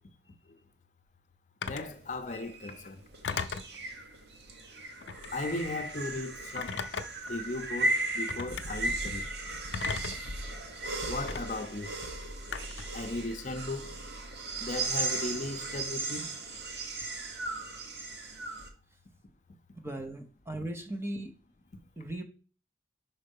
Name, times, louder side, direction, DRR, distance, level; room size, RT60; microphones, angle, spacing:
Telephone, 1.6-1.9 3.2-3.8 5.0-5.4 6.6-7.3 8.3-8.7 9.7-10.3 11.3-11.4 12.5-12.9, left 5 dB, 80° left, 0.5 m, -36 dB
voice 1, 1.6-3.0 5.3-6.8 7.3-9.2 11.1-11.9 12.9-13.9 14.6-16.3, left 2 dB, 45° left, 0.7 m, -36 dB
sound 1, 1.7-18.7, right 2 dB, 65° right, 1.2 m, -36 dB
voice 2, 19.8-21.3 22.0-22.2, right 1 dB, 15° right, 0.9 m, -37 dB
5.5 x 4.3 x 5.3 m
head